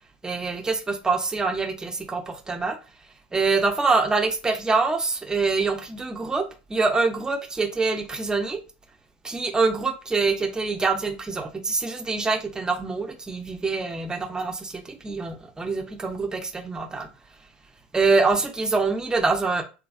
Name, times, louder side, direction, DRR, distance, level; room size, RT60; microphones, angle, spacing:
voice 1, 0.2-2.8 3.3-8.6 9.2-17.1 17.9-19.6, right 4 dB, 15° right, 0.6 m, -25 dB
3.2 x 2.4 x 2.4 m
hypercardioid pair, 80°, 5 cm